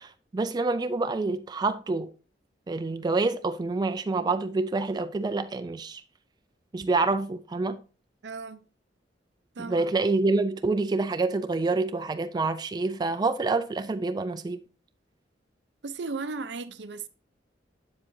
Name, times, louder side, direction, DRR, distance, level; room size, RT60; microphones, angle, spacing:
voice 1, 0.0-2.1 2.7-6.0 6.7-7.8 9.6-14.6, right 3 dB, 25° right, 0.3 m, -27 dB
voice 2, 8.2-8.6 9.6-9.9 15.8-17.1, right 4 dB, 75° right, 0.6 m, -35 dB
7.4 x 7.3 x 2.6 m
head